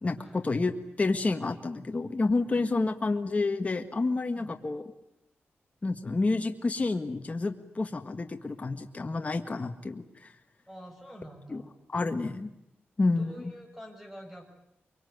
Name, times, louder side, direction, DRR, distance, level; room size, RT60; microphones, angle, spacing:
voice 1, 0.0-0.7 1.0-4.8 5.8-10.3 11.5-11.6 11.9-12.5 13.0-13.3, left 3 dB, 35° left, 5 dB, 1.7 m, -29 dB
voice 2, 10.7-11.7 13.1-14.4, equal, 5° right, 4 dB, 6.7 m, -47 dB
24.0 x 23.5 x 9.5 m, 0.82 s
wide cardioid pair, 95°, 4 cm